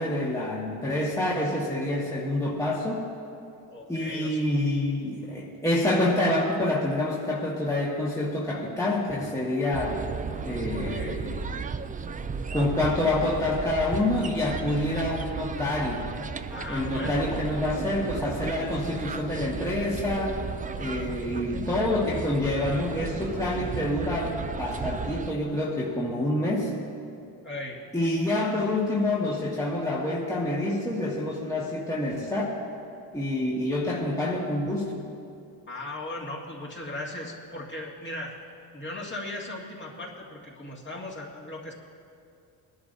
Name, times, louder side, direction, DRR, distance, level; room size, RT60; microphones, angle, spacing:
voice 1, 0.0-3.1 3.9-10.0 10.5-11.5 12.5-16.0 16.7-20.4 20.8-26.7 27.9-32.6 33.1-35.0, left 1 dB, 5° left, -5 dB, 1.7 m, -27 dB
voice 2, 3.7-4.4 10.6-11.2 16.5-17.3 27.4-27.8 35.7-38.4 38.7-41.7, left 2 dB, 25° left, -3 dB, 2.2 m, -38 dB
sound 1, 9.7-25.3, right 5 dB, 20° right, 0.3 m, -35 dB
20.0 x 11.5 x 2.7 m, 2.5 s
cardioid pair, 90°, 46 cm